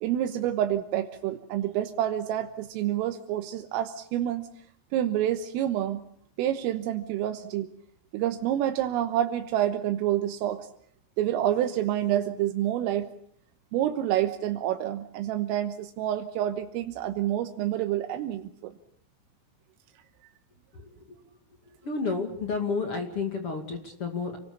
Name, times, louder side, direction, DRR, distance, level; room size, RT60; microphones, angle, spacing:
voice 1, 0.0-4.5 4.9-6.0 6.4-7.7 8.1-10.7 11.2-13.1 13.7-18.7, right 12 dB, 85° right, 7 dB, 3.8 m, -28 dB
voice 2, 21.8-24.4, left 4 dB, 40° left, 4 dB, 2.1 m, -31 dB
29.0 x 19.5 x 7.2 m, 0.64 s
omnidirectional pair, 5.8 m